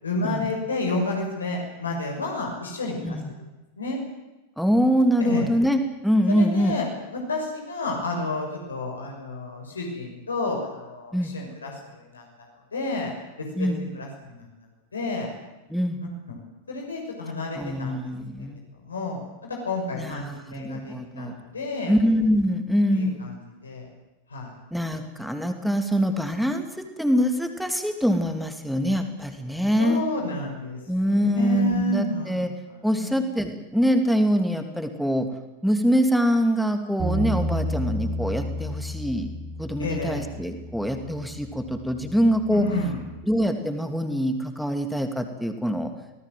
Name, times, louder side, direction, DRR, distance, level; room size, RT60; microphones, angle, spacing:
voice 1, 0.0-3.2 3.8-4.0 5.2-5.5 6.3-6.9 7.1-12.2 12.7-13.1 13.4-14.5 14.9-15.3 16.3-16.4 16.7-18.1 18.8-21.9 22.9-23.8 24.3-24.5 29.8-32.4 32.9-33.2 39.8-40.3 42.5-43.0, left 2 dB, 75° left, 0 dB, 6.3 m, -30 dB
voice 2, 4.6-6.8 11.1-11.3 13.5-13.8 15.7-16.0 17.5-18.6 19.9-21.4 21.9-23.2 24.7-30.0 30.9-32.5 32.8-35.3 35.6-39.3 39.6-42.6 43.2-45.9, equal, ahead, 6 dB, 3.1 m, -24 dB
Bass guitar, 37.0-43.2, equal, 25° right, 3.7 m, -32 dB
26.5 x 19.0 x 7.8 m, 1.0 s
figure-of-eight pair, 90°, 0 cm